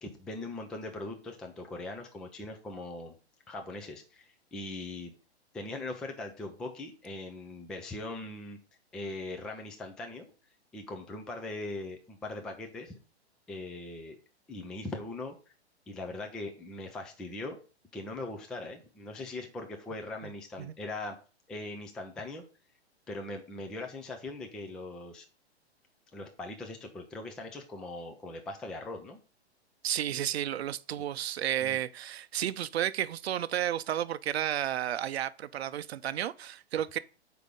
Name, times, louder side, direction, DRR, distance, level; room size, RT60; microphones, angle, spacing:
voice 1, 0.0-3.1 3.5-5.1 5.5-8.6 8.9-10.3 10.7-13.0 13.5-14.2 14.5-15.4 15.9-17.6 17.9-21.2 21.5-22.4 23.1-25.3 26.1-29.2 31.0-31.1 31.6-31.8, left 2 dB, ahead, 0.3 m, -40 dB
voice 2, 29.8-37.0, right 11 dB, 65° right, 0.6 m, -32 dB
6.5 x 5.0 x 5.2 m
hypercardioid pair, 125°, 34 cm